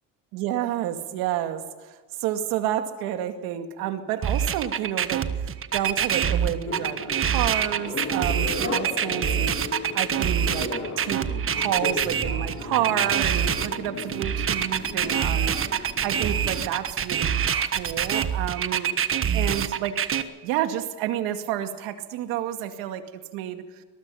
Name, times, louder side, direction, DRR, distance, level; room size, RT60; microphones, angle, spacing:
voice 1, 0.3-11.2 11.5-19.0 19.3-23.8, right 11 dB, 85° right, 7 dB, 2.2 m, -30 dB
sound 1, 4.2-20.2, right 8 dB, 40° right, 1.3 m, -25 dB
sound 2, 6.6-16.7, left 3 dB, 45° left, 7.0 m, -35 dB
22.5 x 20.5 x 5.7 m, 1.4 s
cardioid pair, 110°, 35 cm